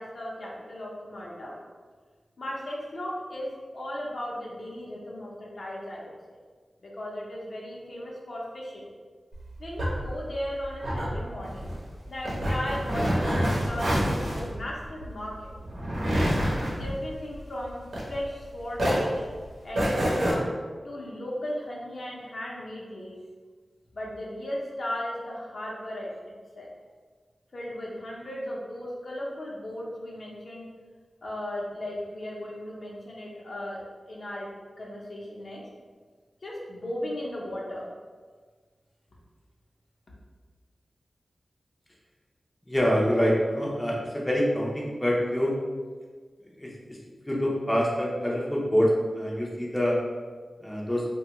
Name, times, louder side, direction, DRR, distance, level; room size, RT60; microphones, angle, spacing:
voice 1, 0.0-1.5 2.4-6.1 6.8-8.8 9.6-11.7 12.1-15.5 16.2-19.3 19.6-20.5 20.8-23.2 23.9-26.1 26.6-26.7 27.5-30.7 31.2-33.8 34.1-34.5 34.8-35.6 36.4-37.9, left 1 dB, 65° left, -4 dB, 0.7 m, -36 dB
sound 1, 9.3-18.4 18.7-20.3, equal, 75° right, 0.8 m, -28 dB
voice 2, 42.7-45.5 46.6-47.0 47.2-50.0 50.6-51.1, equal, 15° left, -4 dB, 0.6 m, -25 dB
3.2 x 2.3 x 2.9 m, 1.5 s
wide cardioid pair, 65°, 0 cm